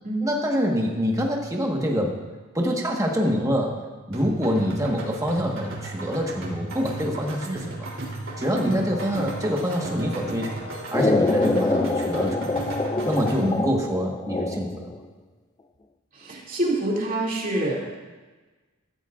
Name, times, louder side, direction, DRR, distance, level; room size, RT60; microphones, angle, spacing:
voice 1, 0.2-2.2 2.5-3.8 4.1-7.9 8.4-12.6 13.0-14.7, equal, 15° right, 0 dB, 1.5 m, -26 dB
sound 1, 4.1-13.6, right 2 dB, 65° right, 3.4 m, -35 dB
Brass instrument, 8.2-13.4, equal, 75° left, 4.5 m, -43 dB
sound 2, 10.9-15.0, left 2 dB, 20° left, 0.3 m, -25 dB
voice 2, 16.1-18.0, right 1 dB, 40° right, -3 dB, 2.7 m, -27 dB
14.5 x 14.0 x 2.6 m, 1.3 s
head